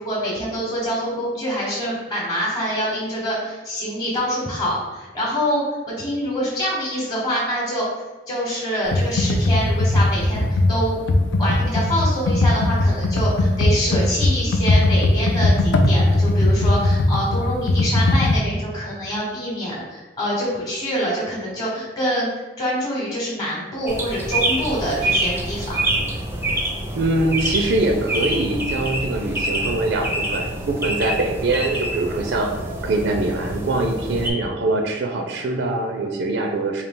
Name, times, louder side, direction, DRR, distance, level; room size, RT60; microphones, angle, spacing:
voice 1, 0.0-7.9 8.3-11.0 11.4-25.8, equal, 20° left, -4 dB, 0.9 m, -25 dB
Computer keyboard, 8.9-18.4, left 2 dB, 85° left, 0.4 m, -18 dB
sound 1, 23.9-34.3, right 1 dB, 15° right, 0.4 m, -26 dB
voice 2, 27.0-32.5 32.8-36.8, right 2 dB, 70° right, 3 dB, 0.4 m, -23 dB
3.9 x 2.3 x 3.6 m, 1.2 s
head